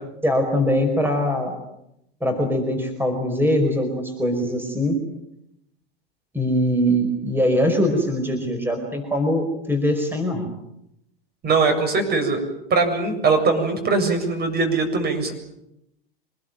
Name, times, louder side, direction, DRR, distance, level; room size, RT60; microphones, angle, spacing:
voice 1, 0.2-1.6 2.2-5.0 6.3-10.5, equal, 5° right, 6 dB, 5.1 m, -22 dB
voice 2, 11.4-12.4 12.7-15.3, right 4 dB, 35° right, 6 dB, 7.4 m, -21 dB
26.0 x 20.5 x 9.2 m, 0.82 s
hypercardioid pair, 100°, 30 cm